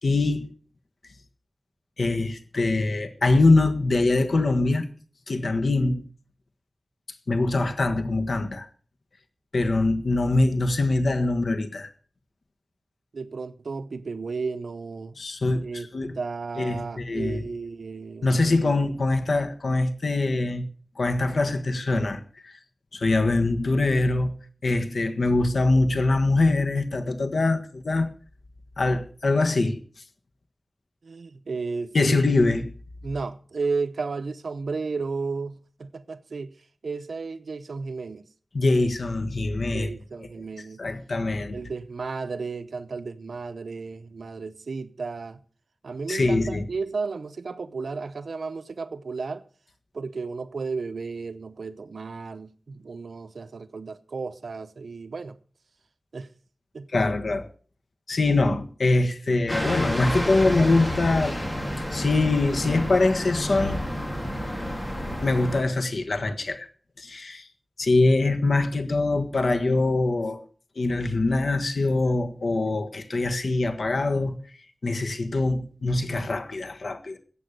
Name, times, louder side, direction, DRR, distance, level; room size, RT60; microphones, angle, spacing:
voice 1, 0.0-0.5 2.0-4.8 5.3-6.0 7.3-8.7 9.5-11.9 15.2-16.1 16.6-17.4 18.2-20.6 21.0-22.5 22.9-24.3 24.6-28.1 28.8-29.8 31.9-32.7 38.5-39.9 40.8-41.6 46.1-46.6 56.9-57.5 58.1-61.4 61.9-63.8 65.2-66.7 67.0-67.5 67.8-70.4 70.8-74.4 74.8-77.2, left 2 dB, 70° left, 1.5 m, -23 dB
voice 2, 13.1-15.1 15.6-15.9 16.1-18.8 31.0-32.2 33.0-36.6 36.8-38.2 38.8-38.9 39.7-40.8 41.5-45.4 45.8-49.4 49.9-55.4 56.1-56.3 56.7-56.9, right 4 dB, 85° right, 0.8 m, -33 dB
sound 1, 59.5-65.6, equal, 20° left, 3.2 m, -30 dB
14.0 x 8.4 x 6.6 m
wide cardioid pair, 80°, 0 cm